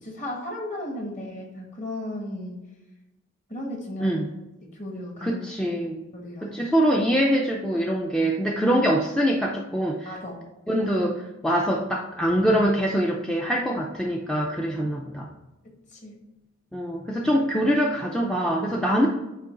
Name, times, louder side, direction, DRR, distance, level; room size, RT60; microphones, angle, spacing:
voice 1, 0.0-2.6 3.5-4.2 4.6-5.4 6.1-6.6 10.0-10.4 10.8-10.9 15.6-16.2, left 1 dB, 35° left, 0 dB, 1.6 m, -35 dB
voice 2, 5.2-6.0 6.4-10.1 10.7-15.3 16.7-19.1, equal, 5° left, -1 dB, 0.4 m, -24 dB
8.6 x 2.9 x 3.8 m, 1.0 s
head